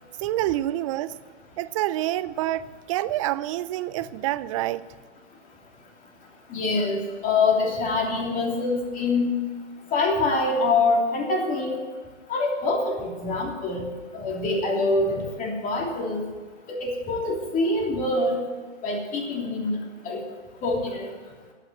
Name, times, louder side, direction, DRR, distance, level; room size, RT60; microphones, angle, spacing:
voice 1, 0.2-1.1 1.6-4.8, right 14 dB, 30° right, 16 dB, 0.4 m, -27 dB
voice 2, 6.5-9.3 9.9-11.8 12.3-13.9 14.1-16.2 16.7-18.4 18.8-19.8 20.0-20.2 20.6-21.1, left 3 dB, 25° left, 0 dB, 3.0 m, -25 dB
11.5 x 9.1 x 8.6 m, 1.5 s
hypercardioid pair, 125°, 34 cm